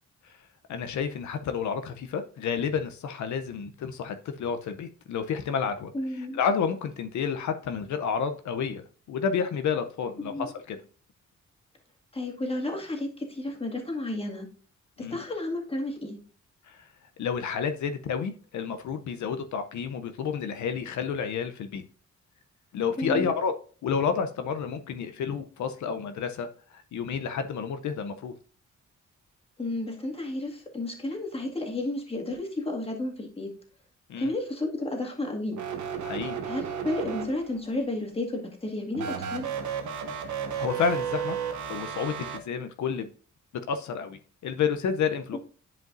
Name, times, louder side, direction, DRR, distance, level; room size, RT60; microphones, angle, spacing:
voice 1, 0.7-10.8 15.0-15.2 16.7-16.9 17.2-21.8 22.7-23.5 23.8-28.3 34.1-34.3 36.0-36.4 40.6-41.4 41.7-43.1 43.7-45.4, left 6 dB, 75° left, 8 dB, 0.7 m, -30 dB
voice 2, 5.9-6.4 10.2-10.5 12.1-14.5 15.0-16.2 23.0-23.3 29.6-33.5 34.2-35.6 36.5-39.5 45.3-45.4, left 2 dB, 20° left, 0 dB, 2.0 m, -32 dB
sound 1, 35.5-37.7 38.9-42.4, right 7 dB, 75° right, 1.2 m, -33 dB
10.5 x 5.1 x 2.6 m, 0.41 s
cardioid pair, 90°, 30 cm